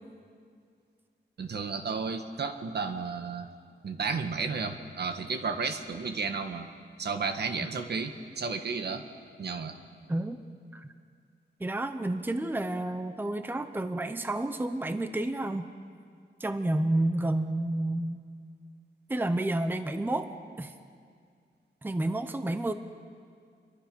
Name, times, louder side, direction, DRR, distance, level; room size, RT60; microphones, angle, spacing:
voice 1, 1.4-3.5 3.8-6.7 7.0-9.0 9.4-9.8, right 5 dB, 65° right, 6 dB, 1.5 m, -33 dB
voice 2, 10.1-10.4 10.7-10.9 11.6-15.7 16.4-18.2 19.1-20.3 20.6-20.7 21.8-22.7, right 1 dB, 10° right, 9 dB, 0.8 m, -30 dB
28.5 x 22.5 x 5.4 m, 2.2 s
wide cardioid pair, 145°, 19 cm